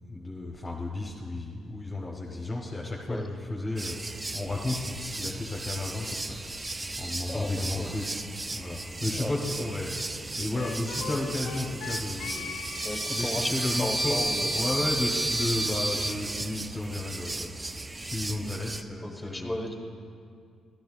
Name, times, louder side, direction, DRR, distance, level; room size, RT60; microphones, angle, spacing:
voice 1, 0.1-6.4 7.0-8.2 8.5-9.9 10.4-12.5 12.8-14.2 14.5-17.5 18.0-19.6, left 2 dB, 25° left, -2 dB, 1.0 m, -33 dB
sound 1, 3.8-18.8, right 2 dB, 20° right, 0.3 m, -33 dB
voice 2, 7.3-8.0 9.1-9.7 12.8-14.7 19.0-19.7, left 1 dB, 5° left, 3 dB, 1.2 m, -35 dB
Wind instrument woodwind instrument, 10.6-16.2, left 6 dB, 85° left, 0.5 m, -41 dB
sound 2, 12.7-16.2, right 4 dB, 35° right, 0.7 m, -48 dB
12.0 x 10.5 x 2.4 m, 2.3 s
cardioid pair, 90°, 0 cm